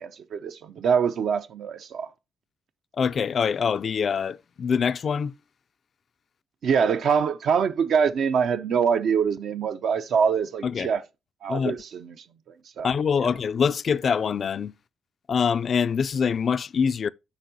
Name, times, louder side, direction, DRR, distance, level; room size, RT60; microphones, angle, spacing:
voice 1, 0.0-2.1 6.6-11.0 11.4-12.1 12.8-12.9, right 6 dB, 65° right, 0.5 m, -24 dB
voice 2, 3.0-5.3 10.6-10.9 11.5-11.8 12.8-14.7 15.3-17.1, left 6 dB, 50° left, 0.3 m, -24 dB
8.0 x 6.0 x 2.8 m
cardioid pair, 90°, 0 cm